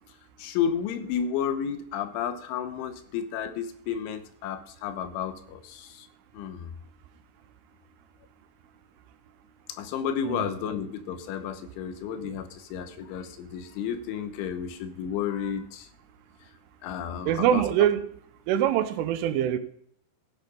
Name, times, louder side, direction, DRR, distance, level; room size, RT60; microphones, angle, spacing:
voice 1, 0.4-6.1 6.3-6.7 9.8-15.9 16.8-17.7, left 8 dB, 80° left, 3.4 m, -32 dB
voice 2, 17.3-18.1 18.5-19.6, right 11 dB, 85° right, 3.4 m, -23 dB
15.5 x 8.2 x 5.2 m
omnidirectional pair, 5.6 m